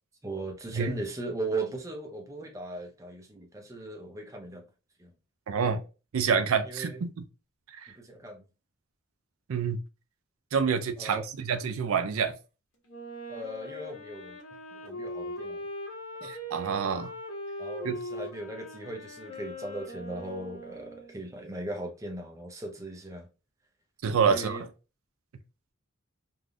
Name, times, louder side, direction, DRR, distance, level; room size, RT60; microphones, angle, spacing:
voice 1, 0.2-4.6 5.0-5.1 6.7-7.0 7.9-8.4 11.0-11.3 13.3-14.4 14.7-15.7 16.2-16.3 17.6-23.3 24.3-24.6, right 2 dB, 15° right, 0.6 m, -38 dB
voice 2, 5.5-5.8 6.1-7.2 7.8-7.9 9.5-9.8 10.5-12.4 16.2-17.1 17.8-18.0 24.0-24.6, right 6 dB, 85° right, 0.4 m, -27 dB
Wind instrument woodwind instrument, 12.9-21.3, equal, 70° left, 1.2 m, -40 dB
3.4 x 2.6 x 2.2 m
head